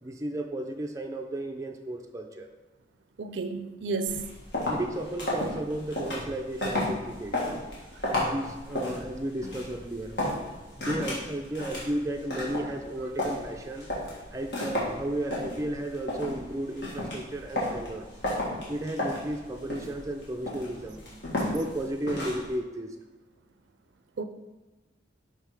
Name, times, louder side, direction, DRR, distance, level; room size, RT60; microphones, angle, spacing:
voice 1, 0.0-2.5 4.7-7.4 8.1-10.2 10.8-13.9 14.3-18.1 18.7-21.0 21.5-23.0, right 1 dB, 15° right, 3 dB, 0.4 m, -34 dB
voice 2, 3.2-4.3 24.2-24.3, right 4 dB, 75° right, 9 dB, 0.4 m, -31 dB
sound 1, 4.1-22.5, left 1 dB, 70° left, 1.7 m, -33 dB
5.5 x 3.6 x 4.8 m, 1.2 s
head